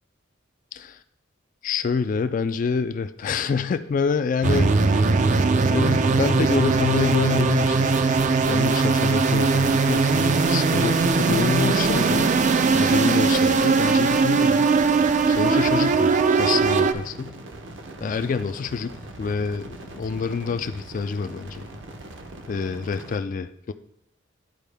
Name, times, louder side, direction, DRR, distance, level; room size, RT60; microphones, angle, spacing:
voice 1, 1.6-5.1 5.6-7.9 8.5-12.3 12.7-14.7 15.3-17.4 18.0-21.6 22.5-23.7, left 5 dB, 45° left, 10 dB, 0.3 m, -27 dB
sound 1, 4.4-16.9, right 4 dB, 40° right, 0.4 m, -20 dB
sound 2, 5.7-23.2, right 2 dB, 70° right, 0.9 m, -40 dB
11.0 x 4.5 x 3.4 m, 0.77 s
head